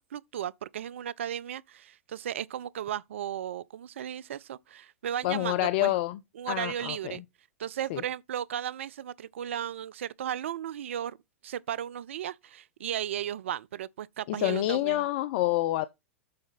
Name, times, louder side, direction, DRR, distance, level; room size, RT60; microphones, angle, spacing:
voice 1, 0.1-6.0 6.4-7.2 7.6-11.2 11.4-15.0, right 10 dB, 65° right, 0.4 m, -35 dB
voice 2, 5.2-6.2 6.5-7.2 7.9-8.0 14.3-15.9, left 16 dB, 50° left, 0.5 m, -27 dB
7.6 x 4.9 x 4.1 m
figure-of-eight pair, 100°, 7 cm